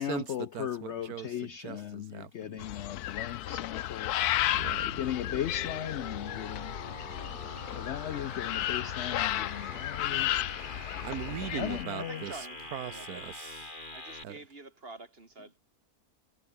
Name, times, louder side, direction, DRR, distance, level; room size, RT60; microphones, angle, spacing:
voice 1, 0.0-4.2 4.9-6.8 7.8-10.3 11.5-12.2, left 10 dB, 60° left, 0.7 m, -37 dB
voice 2, 0.5-2.6 4.5-4.9 11.0-12.3 12.7-13.8 14.2-14.4, right 10 dB, 80° right, 1.3 m, -40 dB
sound 1, 2.6-11.8, left 13 dB, 85° left, 1.2 m, -33 dB
sound 2, 4.2-14.2, left 2 dB, 30° left, 4.1 m, -44 dB
voice 3, 11.9-13.3 13.9-15.6, right 3 dB, 40° right, 3.2 m, -47 dB
omnidirectional pair, 1.6 m